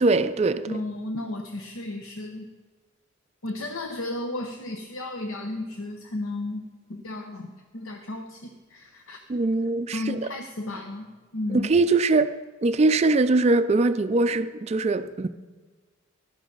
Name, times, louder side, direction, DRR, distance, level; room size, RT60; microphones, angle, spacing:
voice 1, 0.0-0.8 9.3-10.2 11.5-15.3, right 3 dB, 30° right, 0.3 m, -22 dB
voice 2, 0.7-2.5 3.4-6.6 6.9-7.5 7.7-9.2 9.9-11.1 11.3-11.7, left 2 dB, 90° left, 0.9 m, -33 dB
15.5 x 12.5 x 3.9 m
head